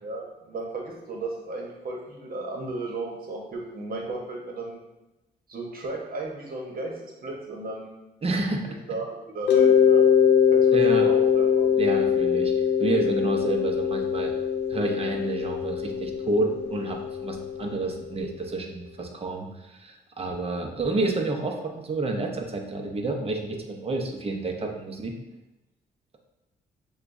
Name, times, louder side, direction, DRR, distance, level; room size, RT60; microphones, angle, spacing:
voice 1, 0.0-4.8 5.5-7.9 8.7-10.0 10.5-11.7, right 2 dB, 55° right, -1 dB, 1.1 m, -35 dB
voice 2, 8.2-8.8 10.7-11.1 11.8-14.3 14.7-25.2, right 2 dB, 35° right, 2 dB, 0.8 m, -29 dB
Mallet percussion, 9.5-18.1, left 8 dB, 75° left, 0.6 m, -22 dB
6.7 x 2.4 x 2.6 m, 0.99 s
cardioid pair, 75°, 18 cm